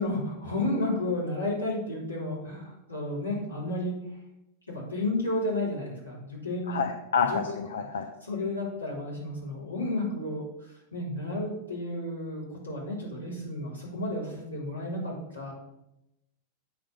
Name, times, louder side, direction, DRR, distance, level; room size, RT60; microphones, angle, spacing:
voice 1, 0.0-3.9 4.7-6.8 7.3-7.6 8.2-15.5, left 2 dB, 80° left, -6 dB, 3.4 m, -32 dB
voice 2, 6.7-8.1, left 6 dB, 65° left, 5 dB, 0.6 m, -28 dB
8.4 x 4.0 x 6.7 m, 0.88 s
figure-of-eight pair, 90°, 0 cm